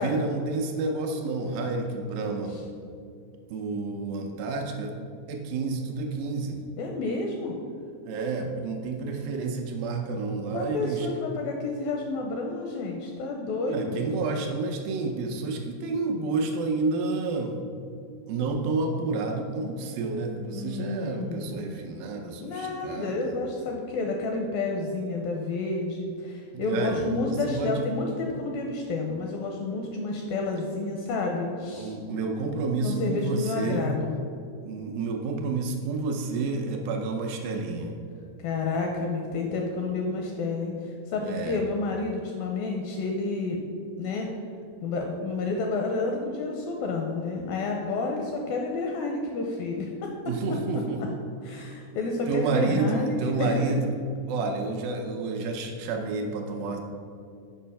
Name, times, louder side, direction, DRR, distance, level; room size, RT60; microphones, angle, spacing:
voice 1, 0.0-2.5 3.5-4.9 5.3-6.6 8.1-11.1 13.7-17.5 18.3-23.3 26.5-27.9 31.7-33.9 34.6-37.9 41.2-41.6 50.3-51.2 52.3-53.9 54.3-56.8, right 3 dB, 80° right, 3 dB, 2.1 m, -29 dB
voice 2, 6.8-7.6 10.5-14.0 20.5-21.7 22.4-32.0 32.8-34.2 38.4-43.6 44.0-44.3 44.8-49.9 51.4-53.6, left 3 dB, 80° left, 1 dB, 2.1 m, -30 dB
7.6 x 5.4 x 5.6 m, 2.5 s
omnidirectional pair, 4.8 m